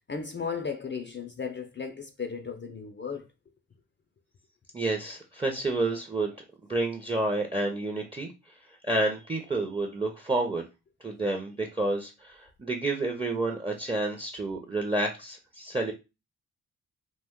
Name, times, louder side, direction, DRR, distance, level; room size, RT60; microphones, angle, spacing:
voice 1, 0.1-3.3, left 5 dB, 30° left, 0.5 m, -35 dB
voice 2, 4.7-6.4 6.7-8.3 8.8-10.6 11.0-15.9, right 2 dB, 15° right, 0.6 m, -29 dB
2.4 x 2.2 x 3.6 m
supercardioid pair, 40°, 38 cm